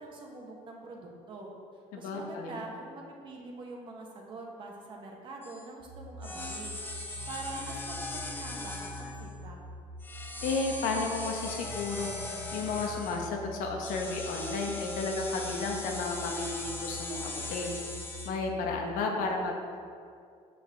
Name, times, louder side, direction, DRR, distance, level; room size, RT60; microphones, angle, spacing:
voice 1, 0.0-1.5 1.9-9.6, right 2 dB, 35° right, 0 dB, 1.0 m, -44 dB
voice 2, 1.9-2.6 10.4-12.2 12.5-17.8 18.2-19.8, left 3 dB, 80° left, 1 dB, 1.1 m, -33 dB
sound 1, 5.4-5.6 6.2-9.4 10.0-13.3 13.8-18.3, left 2 dB, 15° left, 0.6 m, -40 dB
sound 2, 5.8-18.8, equal, 80° right, 0.8 m, -46 dB
7.9 x 5.9 x 3.4 m, 2.3 s
cardioid pair, 170°, 14 cm